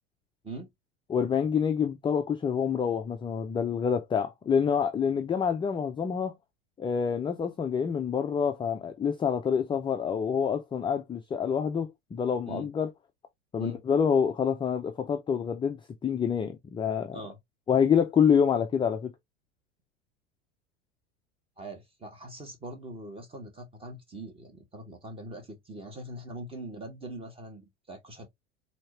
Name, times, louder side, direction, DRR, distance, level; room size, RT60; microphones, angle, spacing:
voice 1, 1.1-6.3 6.8-12.9 13.5-17.2 17.7-19.1, left 7 dB, 15° left, 0.5 m, -27 dB
voice 2, 21.6-28.3, right 1 dB, 15° right, 1.8 m, -42 dB
4.2 x 2.9 x 3.3 m
hypercardioid pair, 100°, 33 cm